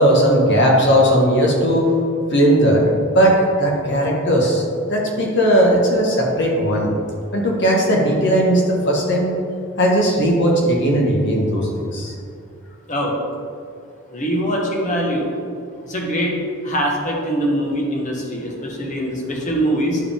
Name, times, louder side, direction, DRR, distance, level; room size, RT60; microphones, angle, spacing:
voice 1, 0.0-1.9 2.3-4.6 4.9-6.9 7.3-9.3 9.8-12.1, equal, 55° left, -2 dB, 1.5 m, -17 dB
voice 2, 14.1-15.3 15.8-16.4 16.6-20.0, equal, 35° left, -1 dB, 1.3 m, -22 dB
10.5 x 4.9 x 3.6 m, 2.3 s
head